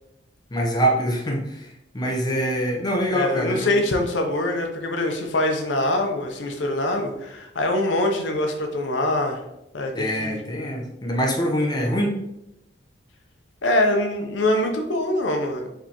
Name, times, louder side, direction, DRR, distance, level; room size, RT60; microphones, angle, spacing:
voice 1, 0.5-3.8 9.9-12.1, equal, 20° left, -1 dB, 0.8 m, -24 dB
voice 2, 3.1-9.4 9.7-10.3 13.6-15.7, left 1 dB, 75° left, 3 dB, 0.7 m, -24 dB
4.8 x 3.4 x 2.9 m, 0.85 s
head